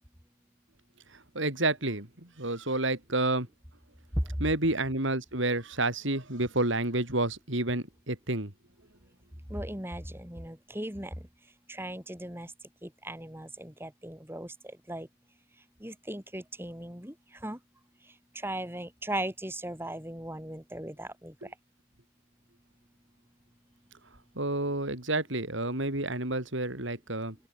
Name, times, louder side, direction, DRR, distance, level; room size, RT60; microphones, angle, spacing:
voice 1, 1.3-2.1 2.4-3.5 4.4-8.5 21.4-21.5 24.4-27.3, right 2 dB, 60° right, 4.0 m, -29 dB
voice 2, 9.5-11.3 11.7-12.5 12.8-14.5 14.9-15.1 15.8-17.1 17.4-17.6 18.3-21.3, right 1 dB, 10° right, 5.6 m, -37 dB
open air
head